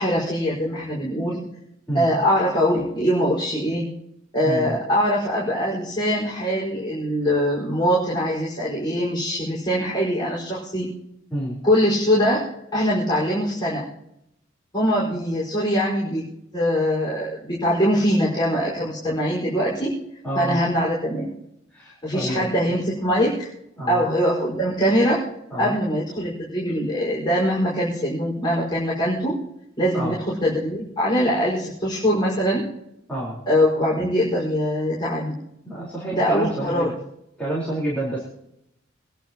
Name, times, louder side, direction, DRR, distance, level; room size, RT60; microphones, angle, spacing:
voice 1, 0.0-1.4 1.9-3.9 4.3-10.9 11.6-13.9 14.7-16.2 16.5-19.9 20.3-21.3 22.0-23.5 23.9-25.2 25.6-29.4 29.8-32.7 33.5-35.3 36.1-36.9, equal, 25° left, -7 dB, 5.1 m, -22 dB
voice 2, 4.4-4.8 11.3-11.6 20.2-20.6 21.7-22.8 23.8-24.0 25.5-25.7 29.9-30.2 33.1-33.4 35.6-36.9 37.4-38.2, right 1 dB, 5° left, -8 dB, 4.3 m, -28 dB
25.5 x 11.5 x 3.0 m, 0.80 s
head